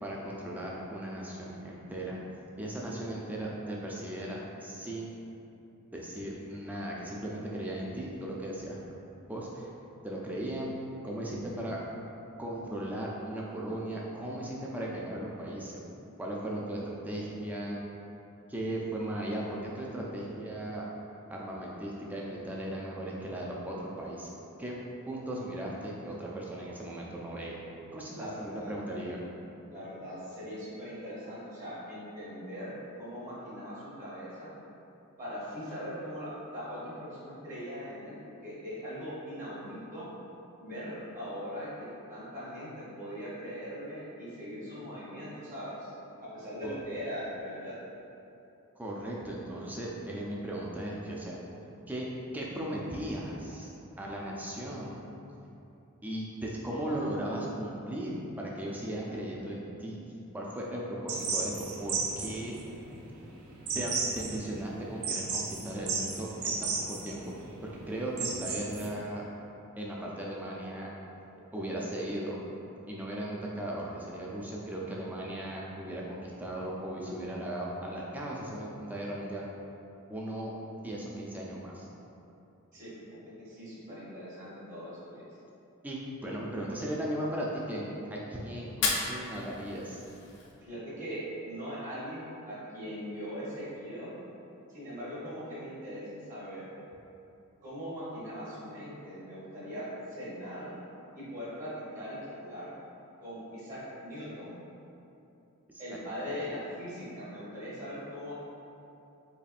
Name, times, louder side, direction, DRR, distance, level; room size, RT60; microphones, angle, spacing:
voice 1, 0.0-2.2 2.6-5.1 5.9-8.8 9.3-9.7 10.0-10.7 11.0-11.8 12.4-15.8 16.2-17.8 18.5-20.9 21.3-24.3 24.6-24.7 25.1-27.6 27.9-29.2 46.6-46.7 48.8-51.4 51.9-52.1 52.3-53.7 54.0-55.0 56.0-60.0 60.3-62.6 63.7-67.2 67.6-69.2 69.8-70.9 71.5-72.4 72.9-79.5 80.1-80.5 80.8-81.9 85.8-90.0 105.9-106.0, right 1 dB, 10° right, -4 dB, 0.4 m, -37 dB
voice 2, 28.1-28.7 29.7-34.5 35.2-38.2 38.4-40.1 40.6-45.9 46.2-47.7 82.7-85.2 90.6-94.1 94.7-96.7 97.6-100.7 101.1-102.7 103.2-104.6 105.8-108.3, equal, 35° right, -10 dB, 1.0 m, -40 dB
sound 1, 61.1-68.9, right 4 dB, 70° right, 0.6 m, -34 dB
Fire, 88.7-90.7, left 4 dB, 50° left, 0.4 m, -34 dB
4.1 x 3.1 x 2.4 m, 2.8 s
head